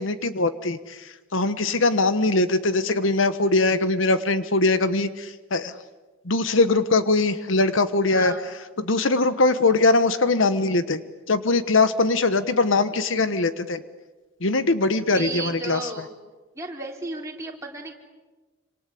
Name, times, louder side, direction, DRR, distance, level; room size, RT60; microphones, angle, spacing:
voice 1, 0.0-5.7 6.2-8.3 8.8-11.0 11.3-13.8 14.4-16.1, left 3 dB, 65° left, 12 dB, 1.2 m, -21 dB
voice 2, 8.1-8.4 15.1-16.1 16.5-17.9, right 3 dB, 15° right, -2 dB, 3.9 m, -34 dB
26.5 x 26.5 x 8.4 m, 1.2 s
head